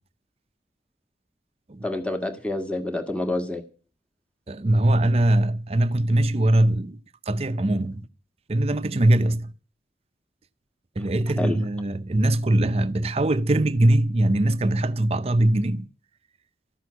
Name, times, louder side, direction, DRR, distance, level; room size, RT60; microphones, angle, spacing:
voice 1, 1.8-3.6 11.4-11.6, left 1 dB, 5° left, 1.4 m, -28 dB
voice 2, 4.5-7.0 7.3-8.1 8.5-9.5 11.0-15.9, right 1 dB, 35° right, 0.6 m, -21 dB
13.5 x 6.3 x 9.5 m
head